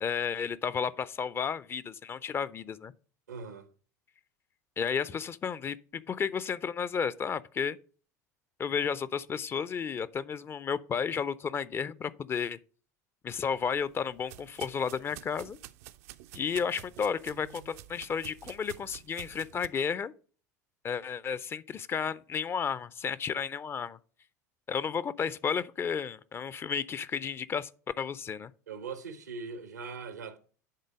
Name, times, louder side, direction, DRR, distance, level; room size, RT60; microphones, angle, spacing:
voice 1, 0.0-2.9 4.8-7.8 8.6-12.6 13.2-15.6 16.3-20.1 20.8-24.0 24.7-27.7 28.0-28.5, left 6 dB, 25° left, 0.5 m, -32 dB
voice 2, 3.3-3.7 28.7-30.4, right 5 dB, 85° right, 0.9 m, -40 dB
sound 1, 13.3-19.7, right 13 dB, 60° right, 0.5 m, -50 dB
10.5 x 3.9 x 5.0 m
figure-of-eight pair, 75°, 9 cm